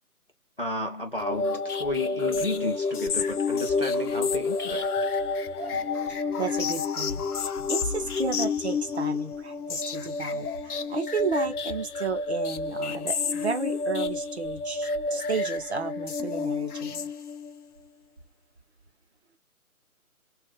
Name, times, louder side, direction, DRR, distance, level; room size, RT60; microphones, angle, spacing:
voice 1, 0.6-4.9, left 1 dB, 40° left, 0.4 m, -32 dB
sound 1, 1.2-17.6, left 4 dB, 85° left, 0.7 m, -29 dB
voice 2, 5.6-17.1, right 4 dB, 45° right, 0.7 m, -33 dB
2.8 x 2.4 x 2.9 m
hypercardioid pair, 165°, 44 cm